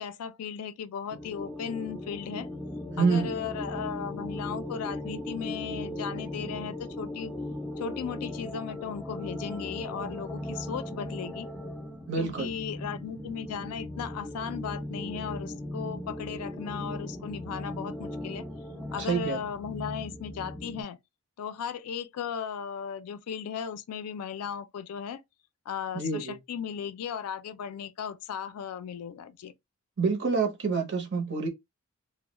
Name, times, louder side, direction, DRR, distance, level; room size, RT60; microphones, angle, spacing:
voice 1, 0.0-2.5 3.0-7.3 7.8-11.5 12.2-18.5 18.9-21.0 21.4-25.2 25.7-29.5, left 7 dB, 80° left, 0.3 m, -36 dB
sound 1, 1.1-20.8, left 1 dB, 5° left, 0.4 m, -38 dB
voice 2, 2.9-3.4 12.1-12.5 19.0-19.4 25.9-26.4 30.0-31.5, right 4 dB, 50° right, 0.6 m, -27 dB
2.2 x 2.0 x 2.9 m
head